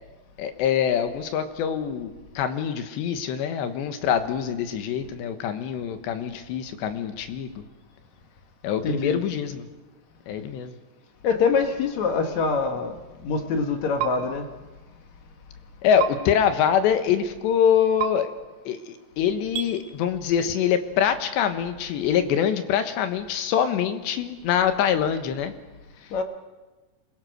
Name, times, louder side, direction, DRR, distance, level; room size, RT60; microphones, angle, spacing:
voice 1, 0.4-7.5 8.6-9.7 10.3-10.8 15.8-18.3 18.7-25.5, left 8 dB, 80° left, 9 dB, 3.5 m, -24 dB
voice 2, 8.8-9.2 11.2-14.5 26.1-26.2, left 5 dB, 60° left, 6 dB, 2.0 m, -24 dB
sound 1, 14.0-14.1 16.0-16.1 18.0-18.1 19.5-19.7, right 15 dB, 85° right, 4.3 m, -27 dB
27.0 x 21.5 x 6.5 m, 1.2 s
omnidirectional pair, 5.0 m